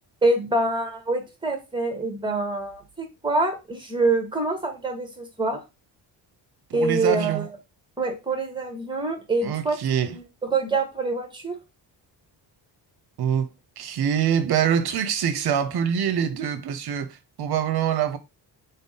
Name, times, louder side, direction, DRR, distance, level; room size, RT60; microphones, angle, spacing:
voice 1, 0.2-5.6 6.7-7.5 8.0-11.6, right 2 dB, 10° right, 0.9 m, -26 dB
voice 2, 6.7-7.4 9.4-10.2 13.2-13.5 13.8-18.2, right 8 dB, 60° right, 0.6 m, -24 dB
3.6 x 2.0 x 3.8 m
cardioid pair, 100°, 44 cm